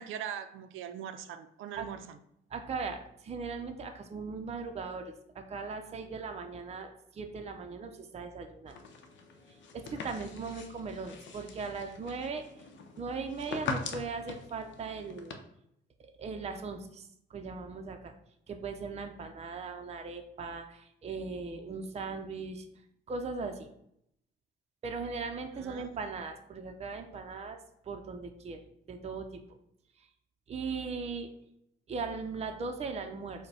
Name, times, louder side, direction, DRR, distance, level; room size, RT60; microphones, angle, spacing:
voice 1, 0.0-2.2 25.6-25.9, right 9 dB, 85° right, 10 dB, 0.5 m, -41 dB
voice 2, 2.5-8.8 9.5-12.6 13.0-15.4 16.2-18.1 18.5-22.7 23.1-23.7 24.8-27.6 27.8-28.6 28.9-29.6 30.0-30.1 30.5-31.3 31.9-33.5, right 4 dB, 30° right, 4 dB, 0.5 m, -39 dB
sound 1, 8.7-15.3, left 4 dB, 70° left, 0.7 m, -42 dB
4.8 x 2.2 x 4.7 m, 0.76 s
cardioid pair, 90°, 20 cm